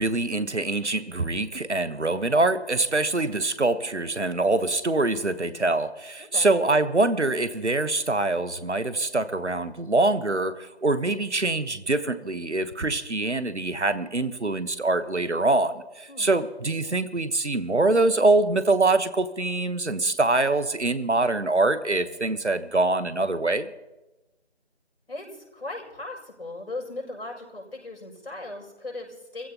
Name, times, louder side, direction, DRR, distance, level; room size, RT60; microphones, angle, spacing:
voice 1, 0.0-23.7, right 2 dB, 85° right, 13 dB, 1.2 m, -24 dB
voice 2, 6.2-6.5 16.1-16.3 25.1-29.5, left 2 dB, 60° left, -2 dB, 6.8 m, -38 dB
28.0 x 15.5 x 2.9 m, 1.0 s
figure-of-eight pair, 170°, 34 cm